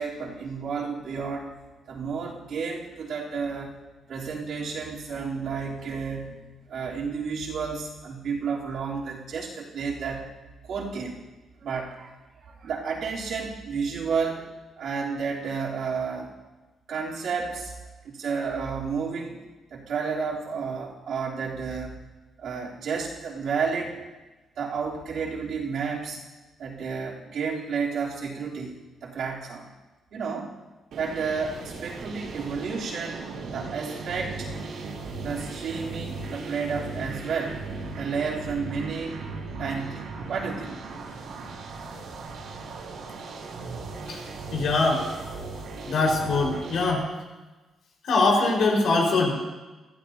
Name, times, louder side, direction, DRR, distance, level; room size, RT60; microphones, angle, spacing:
voice 1, 0.0-1.5 1.9-3.8 4.1-6.4 6.7-10.3 10.6-11.2 11.6-12.1 12.4-14.5 14.8-16.3 16.9-17.7 18.0-19.4 19.7-22.0 22.4-24.0 24.6-26.2 26.6-29.7 30.1-30.5 31.0-33.2 33.5-34.5 35.2-37.6 38.0-39.2 39.6-40.8, right 5 dB, 60° right, -5 dB, 3.5 m, -31 dB
sound 1, 30.9-46.9, right 3 dB, 80° right, 3.4 m, -37 dB
voice 2, 44.5-45.0 45.8-47.0 48.1-49.4, left 3 dB, 65° left, -1 dB, 4.9 m, -22 dB
24.0 x 15.5 x 2.9 m, 1.2 s
cardioid pair, 170°, 0 cm